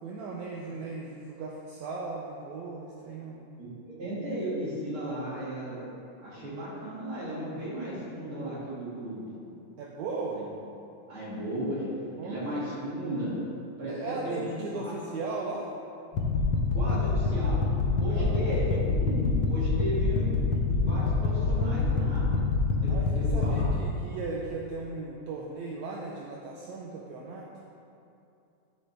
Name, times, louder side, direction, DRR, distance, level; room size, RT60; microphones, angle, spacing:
voice 1, 0.0-3.4 9.8-10.4 12.2-12.4 13.9-15.7 18.1-18.4 22.9-27.5, right 3 dB, 75° right, -2 dB, 1.8 m, -37 dB
voice 2, 3.6-5.8 6.2-9.3 10.3-10.5 11.1-11.9 12.2-13.3 13.8-14.4 14.7-14.9 16.7-17.6 18.0-20.3 20.6-22.3 22.8-23.7, right 1 dB, 45° right, -9 dB, 3.0 m, -35 dB
sound 1, 16.1-23.7, left 4 dB, 70° left, 1.4 m, -26 dB
11.5 x 6.5 x 3.4 m, 2.6 s
omnidirectional pair, 3.6 m